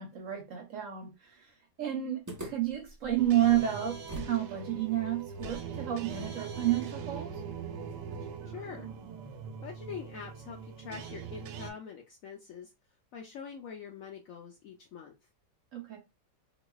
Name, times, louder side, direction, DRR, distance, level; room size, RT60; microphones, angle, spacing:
voice 1, 0.0-1.5 1.8-7.4 15.7-16.0, right 12 dB, 60° right, 0.9 m, -31 dB
sound 1, 2.3-4.4 4.7-4.8 5.3-8.5, right 1 dB, 15° right, 0.6 m, -47 dB
sound 2, 3.2-11.7, right 6 dB, 90° right, 1.3 m, -41 dB
voice 2, 8.5-8.9 9.6-12.7 13.1-15.1, left 6 dB, 70° left, 0.8 m, -44 dB
3.9 x 2.6 x 2.3 m
omnidirectional pair, 1.9 m